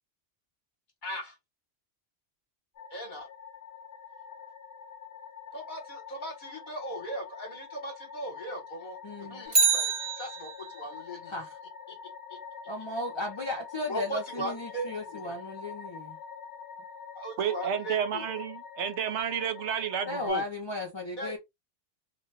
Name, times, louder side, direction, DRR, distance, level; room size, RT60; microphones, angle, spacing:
voice 1, 1.0-1.3 2.9-3.3 5.5-11.3 11.9-12.0 12.3-12.4 13.9-15.3 17.2-18.3 21.2-21.4, right 1 dB, 45° left, 1.1 m, -38 dB
sound 1, 2.8-20.3, left 6 dB, 70° left, 0.9 m, -45 dB
voice 2, 9.0-9.4 11.3-11.6 12.7-16.2 20.1-21.4, left 2 dB, 30° left, 0.6 m, -35 dB
Bicycle, 9.5-10.9 19.2-19.3, right 4 dB, 45° right, 0.9 m, -27 dB
voice 3, 17.4-20.4, right 8 dB, 80° right, 0.9 m, -31 dB
2.8 x 2.2 x 3.2 m
omnidirectional pair, 1.2 m